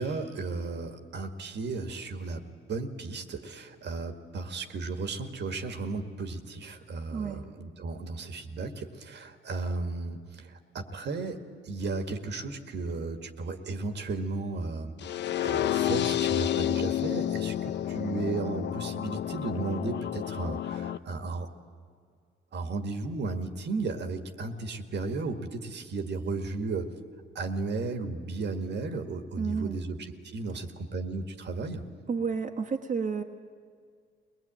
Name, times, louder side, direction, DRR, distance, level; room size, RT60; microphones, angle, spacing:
voice 1, 0.0-21.5 22.5-26.9 27.4-31.8, right 3 dB, 60° right, 6 dB, 1.8 m, -34 dB
voice 2, 7.1-7.4 29.4-29.8 32.1-33.2, right 5 dB, 40° right, 1 dB, 1.4 m, -31 dB
sound 1, 15.0-21.0, left 12 dB, 60° left, 0.6 m, -30 dB
22.0 x 20.0 x 8.9 m, 2.1 s
cardioid pair, 90°, 20 cm